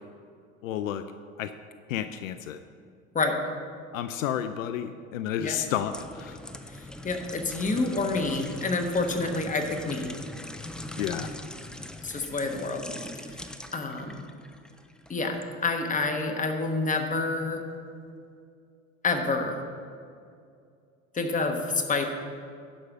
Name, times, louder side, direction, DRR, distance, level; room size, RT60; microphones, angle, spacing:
voice 1, 0.6-1.0 1.4-1.5 1.9-2.6 3.9-6.4 11.0-11.3, left 10 dB, 75° left, 10 dB, 0.5 m, -31 dB
sound 1, 5.5-15.5 15.9-16.1, left 1 dB, ahead, 0.4 m, -41 dB
voice 2, 7.0-10.1 12.0-12.9 13.7-14.2 15.1-17.6 19.0-19.6 21.1-22.1, left 3 dB, 20° left, 4 dB, 1.3 m, -28 dB
11.0 x 5.3 x 6.1 m, 2.4 s
figure-of-eight pair, 70°, 40 cm